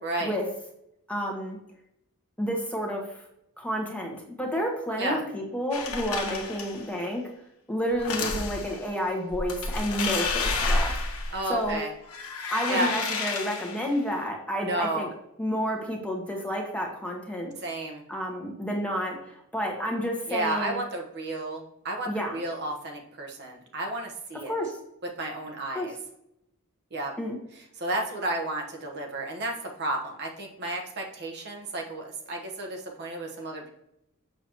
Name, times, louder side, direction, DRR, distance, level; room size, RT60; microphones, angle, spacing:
voice 1, 0.0-0.3 5.0-5.2 11.3-11.9 12.4-12.9 14.6-15.1 17.6-18.0 20.3-24.6 25.2-25.9 26.9-27.1 27.8-33.7, right 2 dB, 50° right, 1 dB, 1.2 m, -32 dB
voice 2, 1.1-1.6 2.4-3.2 3.6-7.2 7.7-10.9 11.5-11.8 12.5-15.1 15.4-17.5 18.1-20.8 22.1-22.4 24.3-24.8 25.7-25.9 27.2-27.4, equal, 5° left, 0 dB, 1.3 m, -30 dB
sound 1, 5.7-6.9 7.9-8.8 9.3-11.7 12.1-13.9, left 3 dB, 85° left, 1.3 m, -30 dB
7.0 x 6.8 x 3.0 m, 0.81 s
head